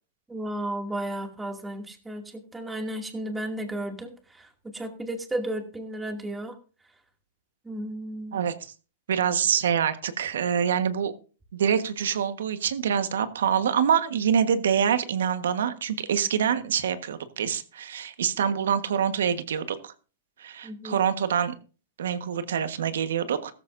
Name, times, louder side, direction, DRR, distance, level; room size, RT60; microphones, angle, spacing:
voice 1, 0.3-6.5 7.6-8.4 20.6-21.0, right 1 dB, 10° right, 3 dB, 2.5 m, -34 dB
voice 2, 9.1-11.1 11.5-19.9 20.4-21.5 22.0-23.5, right 8 dB, 85° right, 10 dB, 1.4 m, -25 dB
15.5 x 13.5 x 2.7 m, 0.36 s
hypercardioid pair, 130°, 0 cm